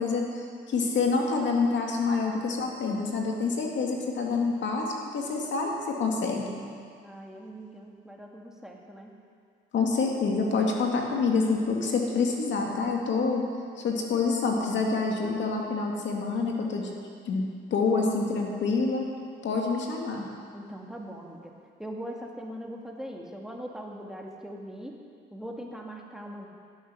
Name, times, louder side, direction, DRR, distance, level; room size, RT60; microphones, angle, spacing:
voice 1, 0.0-6.5 9.7-13.5 13.8-16.9 17.2-19.0 19.4-20.3, left 4 dB, 65° left, 0 dB, 2.3 m, -27 dB
voice 2, 7.0-9.1 20.5-21.5 21.8-25.0 25.3-26.5, equal, 5° right, 0 dB, 1.8 m, -41 dB
16.5 x 9.2 x 6.2 m, 2.2 s
cardioid pair, 90°, 20 cm